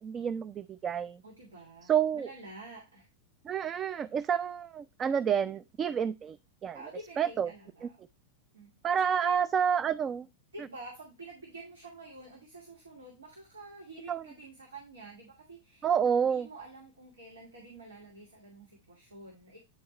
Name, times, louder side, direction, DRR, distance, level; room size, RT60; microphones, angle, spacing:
voice 1, 0.0-1.2 1.8-2.3 3.4-6.4 6.6-6.8 7.2-7.5 7.8-7.9 8.8-10.3 14.1-14.2 15.8-16.5, right 8 dB, 25° right, 0.3 m, -29 dB
voice 2, 1.2-3.1 6.7-8.0 8.5-8.7 9.0-9.3 10.5-19.6, right 2 dB, 70° right, 1.8 m, -49 dB
9.0 x 4.6 x 3.1 m
figure-of-eight pair, 90°, 0 cm